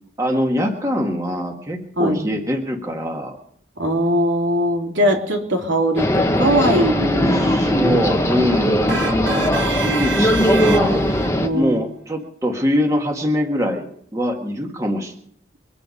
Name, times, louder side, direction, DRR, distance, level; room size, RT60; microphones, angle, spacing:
voice 1, 0.2-3.4 7.2-13.8 14.1-15.1, equal, 15° right, 1 dB, 1.7 m, -23 dB
voice 2, 3.8-7.8 8.3-8.5 11.4-11.8, equal, 85° right, 0 dB, 3.3 m, -21 dB
sound 1, 6.0-11.5, equal, 15° left, 1.0 m, -19 dB
sound 2, 8.9-11.3, right 4 dB, 70° right, 1.6 m, -27 dB
23.5 x 9.0 x 5.4 m, 0.66 s
head